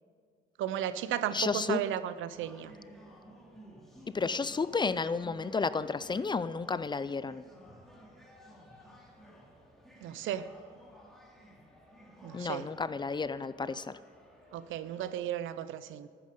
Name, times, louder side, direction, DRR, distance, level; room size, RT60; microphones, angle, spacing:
voice 1, 0.6-2.7 10.0-10.5 12.2-12.7 14.5-16.1, right 11 dB, 80° right, 14 dB, 0.6 m, -34 dB
voice 2, 1.3-1.8 4.1-7.4 12.3-14.0, left 4 dB, 25° left, 16 dB, 0.4 m, -32 dB
sound 1, 2.3-15.2, equal, ahead, 2.5 m, -55 dB
13.0 x 9.1 x 5.4 m, 2.1 s
cardioid pair, 90°, 20 cm